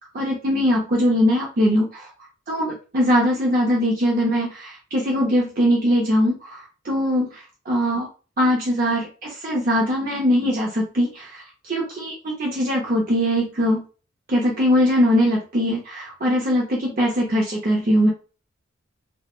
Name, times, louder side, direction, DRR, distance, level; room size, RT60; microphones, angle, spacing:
voice 1, 0.1-2.1 2.5-8.1 8.4-13.8 14.3-18.1, equal, 45° right, -2 dB, 0.6 m, -21 dB
2.3 x 2.1 x 3.0 m, 0.35 s
head